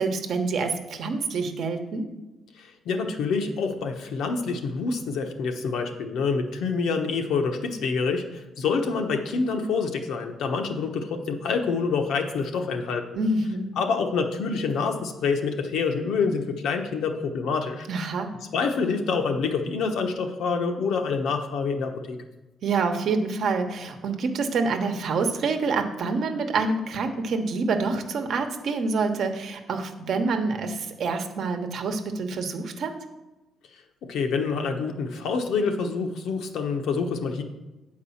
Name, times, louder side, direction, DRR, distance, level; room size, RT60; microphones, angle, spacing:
voice 1, 0.0-2.1 13.1-13.7 17.9-18.3 22.6-32.9, right 4 dB, 55° right, 6 dB, 1.0 m, -27 dB
voice 2, 2.6-13.1 13.8-17.9 18.5-22.2 34.0-37.4, left 5 dB, 75° left, 4 dB, 1.1 m, -27 dB
9.3 x 4.8 x 7.1 m, 1.1 s
cardioid pair, 170°, 0 cm